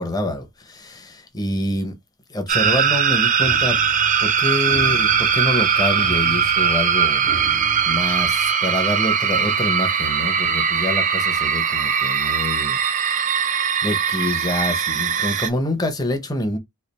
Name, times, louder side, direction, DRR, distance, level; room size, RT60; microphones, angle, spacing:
voice 1, 0.0-1.9 2.3-3.8 4.2-7.4 7.9-12.8 13.2-13.4 13.8-16.6, left 1 dB, 20° left, 0.7 m, -26 dB
sound 1, 2.5-15.5, right 7 dB, 35° right, 0.5 m, -20 dB
sound 2, 2.6-8.5, equal, 70° left, 1.0 m, -37 dB
3.2 x 2.4 x 4.0 m
head